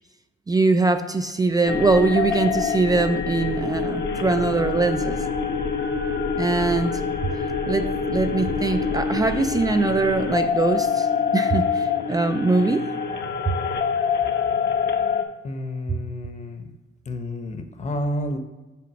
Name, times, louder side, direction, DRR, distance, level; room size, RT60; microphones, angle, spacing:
voice 1, 0.5-5.2 6.4-7.0 7.7-12.9 13.5-13.6, right 3 dB, 20° right, 8 dB, 0.4 m, -22 dB
sound 1, 1.7-15.2, left 5 dB, 60° left, 0.9 m, -25 dB
voice 2, 15.4-16.6 17.1-18.4, left 1 dB, 35° left, 7 dB, 1.0 m, -30 dB
5.8 x 4.9 x 6.1 m, 1.2 s
cardioid pair, 90°, 20 cm